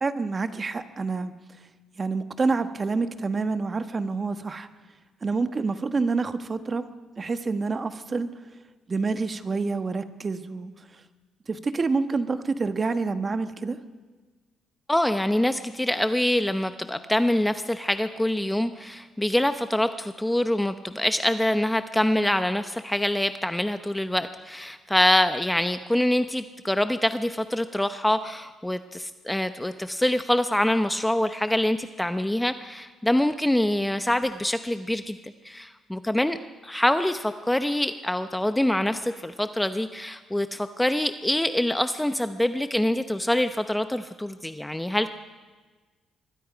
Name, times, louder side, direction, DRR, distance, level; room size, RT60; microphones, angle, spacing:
voice 1, 0.0-1.4 2.0-4.7 5.2-6.9 7.2-8.3 8.9-11.0 11.5-13.8, right 4 dB, 35° right, 10 dB, 1.3 m, -27 dB
voice 2, 14.9-35.2 35.4-36.4 36.6-45.1, left 1 dB, 5° left, 9 dB, 0.8 m, -25 dB
25.0 x 21.0 x 5.1 m, 1.4 s
cardioid pair, 90°, 0 cm